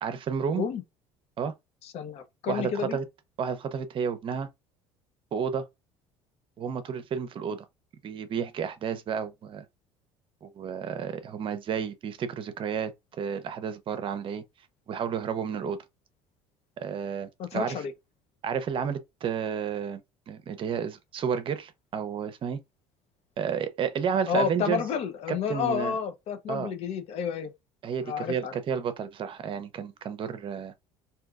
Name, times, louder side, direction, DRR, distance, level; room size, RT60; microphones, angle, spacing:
voice 1, 0.0-0.6 1.4-1.5 2.5-3.0 3.4-4.5 5.3-5.6 6.6-7.7 8.0-9.6 10.4-14.4 14.9-15.8 16.8-17.8 18.4-20.0 20.3-22.6 23.4-24.8 25.3-25.9 26.5-26.7 27.8-30.7, right 7 dB, 45° right, 0.7 m, -31 dB
voice 2, 1.8-3.0 17.4-17.9 24.3-27.5 28.0-28.6, left 7 dB, 60° left, 0.8 m, -30 dB
3.6 x 2.8 x 2.4 m
supercardioid pair, 90°, 12 cm